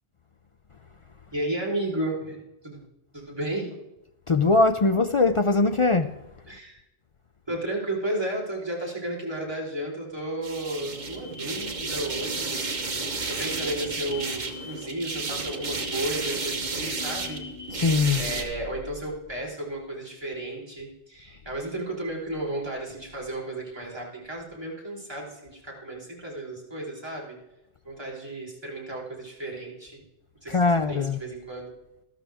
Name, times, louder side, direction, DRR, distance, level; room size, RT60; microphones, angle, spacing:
voice 1, 1.3-2.8 3.1-3.8 6.5-6.8 7.5-13.0 13.3-17.4 17.7-17.9 18.2-27.4 27.8-30.0 30.4-31.7, right 1 dB, 20° right, 3.9 m, -33 dB
voice 2, 4.3-6.2 17.7-18.2 30.5-31.2, left 3 dB, 50° left, 0.3 m, -21 dB
sound 1, 10.4-18.4, right 3 dB, 40° right, 1.3 m, -32 dB
13.5 x 12.5 x 3.5 m
omnidirectional pair, 1.2 m